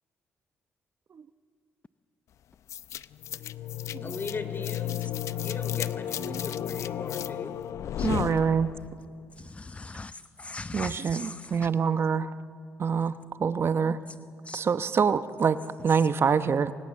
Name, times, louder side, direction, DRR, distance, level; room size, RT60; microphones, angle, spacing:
sound 1, 2.7-9.0, left 11 dB, 70° left, 0.7 m, -33 dB
voice 1, 4.0-7.6, left 4 dB, 45° left, 9 dB, 3.8 m, -39 dB
voice 2, 8.0-8.7 10.7-12.3 12.8-14.0 14.5-16.7, right 6 dB, 50° right, 12 dB, 1.0 m, -26 dB
voice 3, 9.4-11.7 14.5-14.6, left 3 dB, 25° left, 15 dB, 0.6 m, -40 dB
28.0 x 26.5 x 7.6 m, 2.2 s
supercardioid pair, 55°, 5 cm